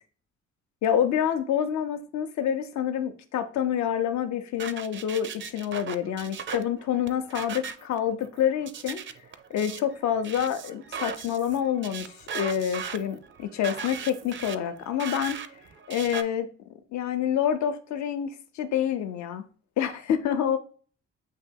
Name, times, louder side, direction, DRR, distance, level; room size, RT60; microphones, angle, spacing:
voice 1, 0.8-9.0 9.5-15.4 15.9-16.5 16.9-19.4 19.8-20.6, left 9 dB, 65° left, 0.6 m, -27 dB
sound 1, 4.6-16.2, right 7 dB, 40° right, 0.4 m, -38 dB
7.5 x 2.7 x 2.2 m
cardioid pair, 90°, 30 cm